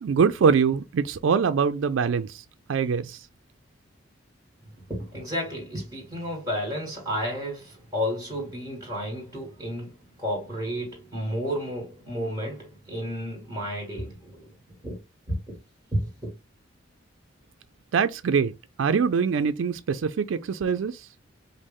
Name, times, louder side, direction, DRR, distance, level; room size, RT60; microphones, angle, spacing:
voice 1, 0.0-2.4 2.7-3.2 17.9-18.5 18.8-21.0, right 6 dB, 75° right, 0.4 m, -23 dB
voice 2, 4.8-14.5 14.8-15.0 15.3-15.6 15.9-16.3, equal, 20° right, 1.9 m, -32 dB
5.2 x 2.0 x 3.6 m
head